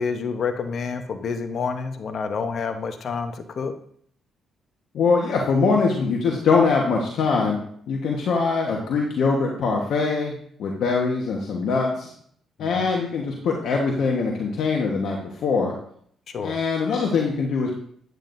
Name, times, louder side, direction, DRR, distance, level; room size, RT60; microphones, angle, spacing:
voice 1, 0.0-3.7 12.6-12.9 16.3-16.6, left 5 dB, 55° left, 8 dB, 0.9 m, -28 dB
voice 2, 4.9-10.3 10.6-12.1 12.6-15.7 16.4-17.7, left 4 dB, 70° left, 0 dB, 1.3 m, -22 dB
9.3 x 8.9 x 2.7 m, 0.63 s
cardioid pair, 90°, 0 cm